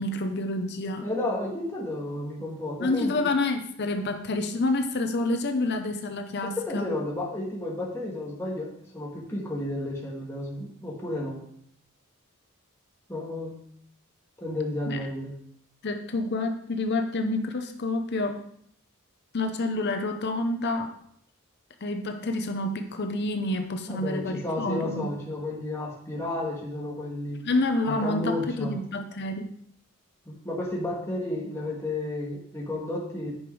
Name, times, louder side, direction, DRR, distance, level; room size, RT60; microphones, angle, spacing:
voice 1, 0.0-1.0 2.8-6.9 14.9-15.0 15.8-18.4 19.3-20.9 21.8-25.0 27.4-29.5, left 2 dB, 50° left, 7 dB, 0.7 m, -28 dB
voice 2, 1.0-3.3 6.4-11.4 13.1-13.6 14.4-15.3 23.9-27.4 27.9-28.7 30.3-33.3, left 1 dB, 10° left, -4 dB, 1.9 m, -32 dB
9.4 x 5.2 x 4.7 m, 0.67 s
head